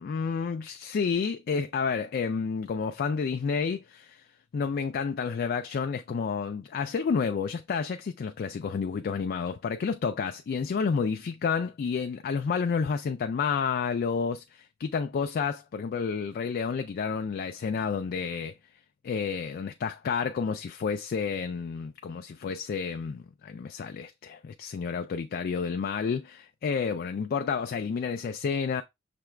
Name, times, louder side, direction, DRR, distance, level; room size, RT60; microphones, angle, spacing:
voice 1, 0.0-4.3 4.5-18.5 19.0-28.8, left 5 dB, 45° left, 0.3 m, -30 dB
5.9 x 2.3 x 3.2 m
head